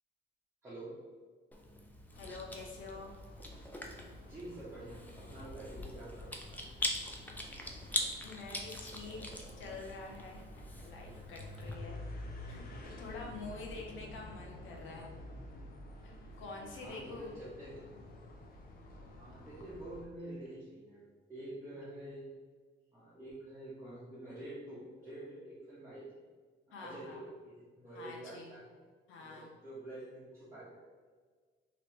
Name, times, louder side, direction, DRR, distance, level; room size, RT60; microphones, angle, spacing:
voice 1, 0.6-0.9 4.2-6.7 16.8-17.3 17.6-17.9 19.1-22.3 22.9-26.1 26.7-28.8 29.2-30.8, right 1 dB, 15° right, -11 dB, 1.1 m, -48 dB
Chewing mastication, 1.5-11.7, left 1 dB, 10° left, 0.5 m, -43 dB
sound 1, 2.1-20.0, left 1 dB, 50° left, 0.7 m, -50 dB
voice 2, 2.2-3.1 8.2-10.4 10.8-12.0 12.4-15.1 16.0-17.3 26.7-27.3 27.9-28.5 29.1-29.5, left 3 dB, 80° left, 0 dB, 0.7 m, -47 dB
3.0 x 3.0 x 3.0 m, 1.5 s
cardioid pair, 90°, 20 cm